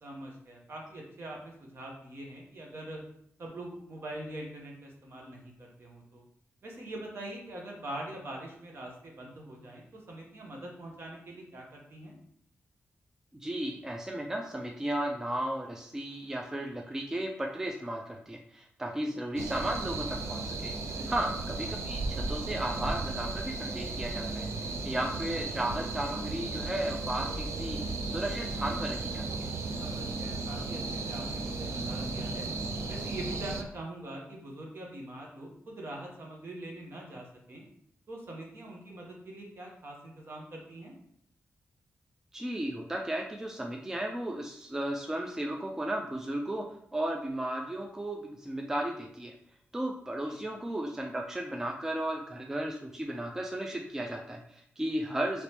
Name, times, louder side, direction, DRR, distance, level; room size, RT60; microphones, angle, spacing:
voice 1, 0.0-3.0 3.4-6.2 6.6-12.2 20.9-21.1 29.8-32.5 32.9-37.6 38.1-40.9 50.3-50.4, right 1 dB, 55° right, -1 dB, 0.9 m, -43 dB
voice 2, 13.3-20.7 21.1-29.5 42.3-46.6 46.9-49.3 49.7-55.4, right 1 dB, 10° right, 2 dB, 0.3 m, -34 dB
sound 1, 19.4-33.6, right 3 dB, 85° right, 0.4 m, -35 dB
2.9 x 2.9 x 3.3 m, 0.68 s
wide cardioid pair, 125°, 5 cm